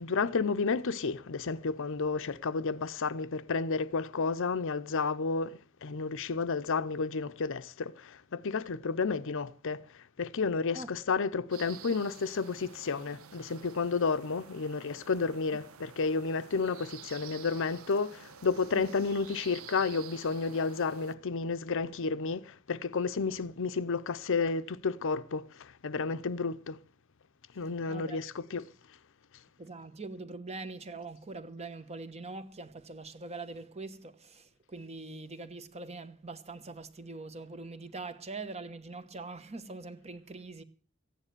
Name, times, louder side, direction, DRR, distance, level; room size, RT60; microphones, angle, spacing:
voice 1, 0.0-26.8 27.6-28.7, left 4 dB, 65° left, 0.7 m, -31 dB
sound 1, 11.5-21.2, right 8 dB, 70° right, 0.7 m, -50 dB
voice 2, 27.9-28.2 29.6-40.6, right 3 dB, 30° right, 1.1 m, -43 dB
15.0 x 9.9 x 6.7 m
head